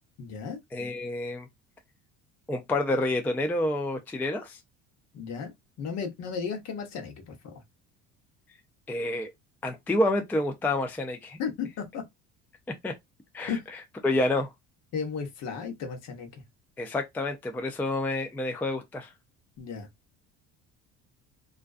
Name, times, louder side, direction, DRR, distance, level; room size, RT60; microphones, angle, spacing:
voice 1, 0.2-0.6 5.1-5.5 5.8-7.6 11.4-12.0 13.5-13.6 14.9-16.4 19.6-19.9, left 6 dB, 55° left, 1.0 m, -34 dB
voice 2, 0.7-1.5 2.5-4.6 8.9-9.3 9.6-11.4 12.8-12.9 13.3-13.6 14.0-14.5 16.8-19.1, left 2 dB, 5° left, 0.3 m, -28 dB
2.5 x 2.2 x 2.3 m
supercardioid pair, 100°, 32 cm